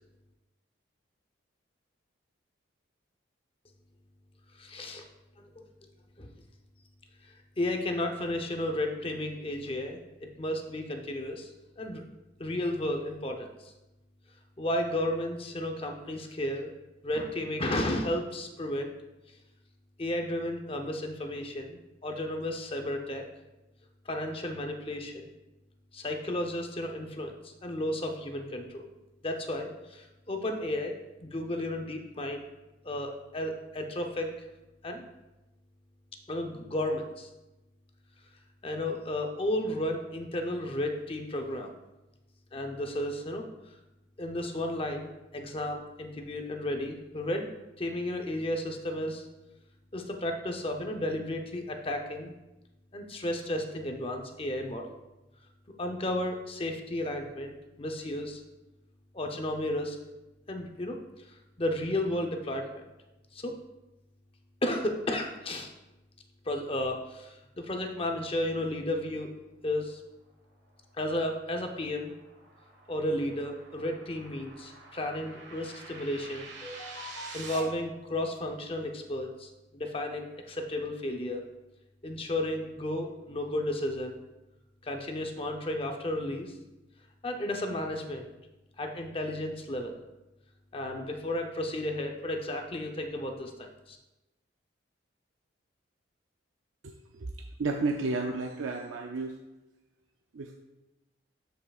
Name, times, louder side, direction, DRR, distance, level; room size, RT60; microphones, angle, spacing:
voice 1, 4.6-5.0 5.4-5.6 6.2-6.3 7.6-11.5 11.8-12.0 12.4-13.7 14.6-16.7 17.0-18.9 20.0-23.2 24.1-25.3 25.9-28.9 29.2-30.9 31.2-32.4 32.8-34.3 34.8-35.1 36.3-37.3 38.6-41.7 42.5-43.4 44.2-47.5 47.8-49.3 49.9-52.4 52.9-54.8 55.8-58.4 59.1-60.0 60.5-61.3 61.6-62.8 63.3-63.5 64.6-65.7 66.5-69.3 69.6-70.0 71.0-72.1 72.9-81.4 82.0-84.2 84.8-86.6 87.2-88.2 88.8-89.9 90.7-94.0, left 1 dB, 30° left, 3 dB, 0.7 m, -33 dB
sound 1, 70.7-77.6, right 3 dB, 60° right, 1.4 m, -48 dB
voice 2, 97.6-99.4 100.3-100.5, right 3 dB, 85° right, 3 dB, 0.5 m, -31 dB
12.0 x 5.6 x 2.4 m, 1.0 s
head